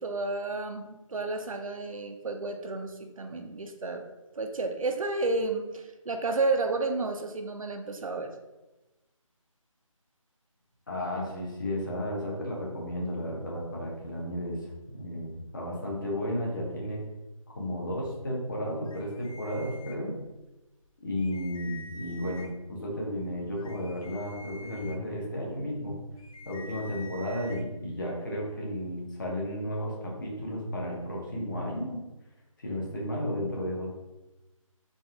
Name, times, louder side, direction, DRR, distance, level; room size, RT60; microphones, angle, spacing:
voice 1, 0.0-4.1 4.3-8.3, right 3 dB, 75° right, 5 dB, 0.6 m, -31 dB
voice 2, 10.9-14.6 14.9-17.0 17.5-20.1 21.0-26.0 26.5-32.0 32.6-33.9, equal, 35° left, -3 dB, 1.0 m, -33 dB
sound 1, 18.9-20.4 20.8-20.9 21.2-22.7 23.2-27.6, left 2 dB, 85° left, 0.5 m, -48 dB
4.0 x 2.5 x 3.5 m, 1.0 s
figure-of-eight pair, 165°, 18 cm